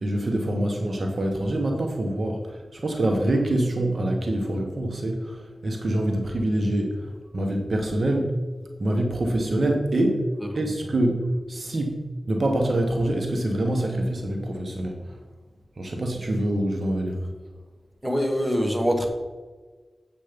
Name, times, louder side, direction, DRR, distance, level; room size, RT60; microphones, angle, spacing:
voice 1, 0.0-8.5 8.8-10.3 10.5-12.0 12.3-15.1 15.8-17.2, right 1 dB, 60° right, 3 dB, 1.3 m, -25 dB
voice 2, 18.0-19.1, equal, 10° right, 2 dB, 1.7 m, -23 dB
8.0 x 7.5 x 5.2 m, 1.3 s
wide cardioid pair, 65°, 0 cm